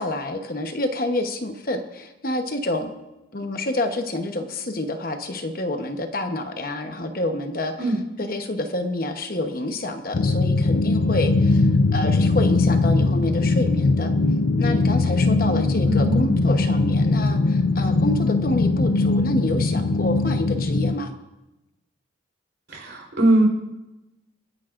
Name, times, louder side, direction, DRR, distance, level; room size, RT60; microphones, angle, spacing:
voice 1, 0.0-2.9 3.3-7.7 8.2-14.1 14.6-21.1, left 1 dB, 50° left, 5 dB, 1.0 m, -28 dB
sound 1, 10.1-20.9, left 3 dB, 65° left, 0.5 m, -20 dB
voice 2, 15.8-16.5 22.7-23.5, right 1 dB, 65° right, -1 dB, 4.0 m, -21 dB
28.0 x 10.5 x 2.6 m, 0.99 s
head